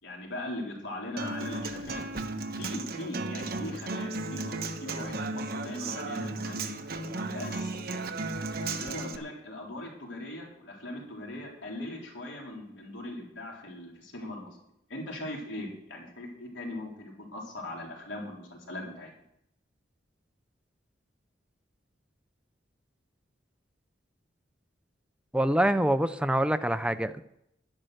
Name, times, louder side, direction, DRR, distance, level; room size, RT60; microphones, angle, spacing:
voice 1, 0.0-2.0 2.5-6.6 7.3-7.7 8.6-14.6 14.9-19.1, left 1 dB, 75° left, -2 dB, 4.0 m, -40 dB
Human voice / Acoustic guitar, 1.2-9.2, right 2 dB, 50° right, 1.1 m, -35 dB
voice 2, 25.3-27.2, right 1 dB, 5° right, 10 dB, 0.5 m, -25 dB
11.5 x 10.5 x 6.5 m, 0.78 s
head